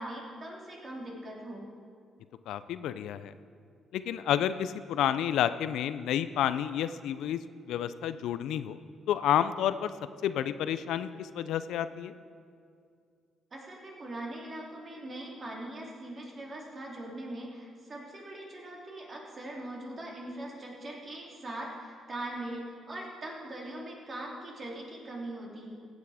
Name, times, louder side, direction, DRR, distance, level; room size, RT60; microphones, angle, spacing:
voice 1, 0.0-1.6 13.5-25.7, right 1 dB, 40° right, -2 dB, 2.9 m, -41 dB
voice 2, 2.5-3.3 3.9-7.4 7.7-8.8 9.1-9.9 10.2-12.1, left 10 dB, 85° left, 13 dB, 0.4 m, -30 dB
15.5 x 8.2 x 4.9 m, 2.3 s
cardioid pair, 90°, 0 cm